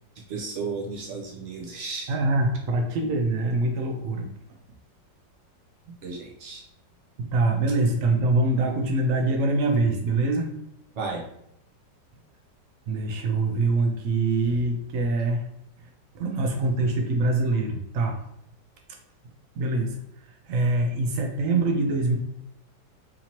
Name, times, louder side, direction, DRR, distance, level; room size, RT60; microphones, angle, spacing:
voice 1, 0.3-2.1 6.0-6.6 10.9-11.2, right 4 dB, 50° right, -1 dB, 0.9 m, -33 dB
voice 2, 2.1-4.3 7.2-10.5 12.9-15.4 16.1-18.2 19.6-20.0 20.4-22.2, right 2 dB, 90° right, 3 dB, 0.7 m, -24 dB
4.1 x 2.9 x 2.8 m, 0.76 s
omnidirectional pair, 2.0 m